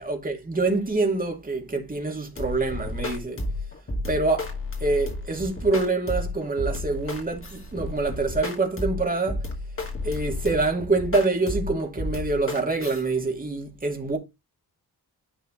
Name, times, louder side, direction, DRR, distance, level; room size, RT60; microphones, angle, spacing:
voice 1, 0.0-3.4 4.1-4.5 4.8-9.4 10.0-14.2, right 3 dB, 20° right, 2.3 m, -26 dB
sound 1, 2.4-13.0, left 2 dB, 35° left, 2.2 m, -32 dB
10.5 x 3.9 x 3.8 m
wide cardioid pair, 120°, 39 cm